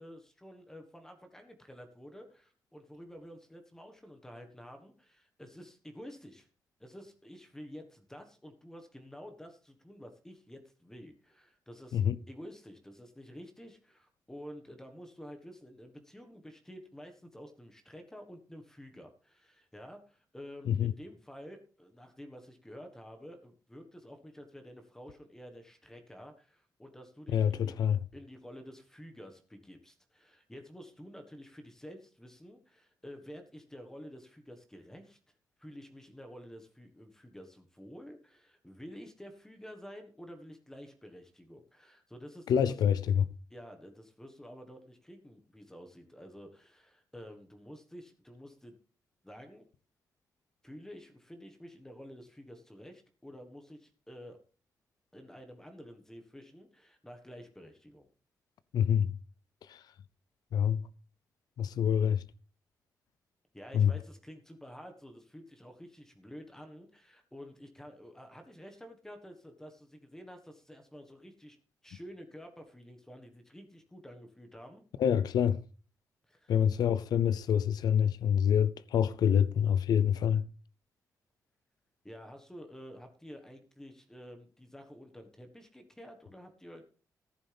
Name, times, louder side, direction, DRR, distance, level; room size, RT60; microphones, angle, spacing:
voice 1, 0.0-6.5 6.8-12.0 12.3-27.9 28.1-35.2 35.6-42.8 43.5-48.7 49.2-49.6 50.6-54.4 55.1-58.1 63.5-71.6 71.8-74.8 76.3-76.5 82.0-86.8, equal, 5° left, 1.4 m, -50 dB
voice 2, 27.3-28.0 42.5-43.2 58.7-59.1 59.7-59.8 60.5-60.8 61.6-62.2 63.7-63.9 75.0-75.6 76.5-80.4, left 8 dB, 85° left, 0.5 m, -26 dB
14.0 x 11.0 x 3.4 m
wide cardioid pair, 135°, 7 cm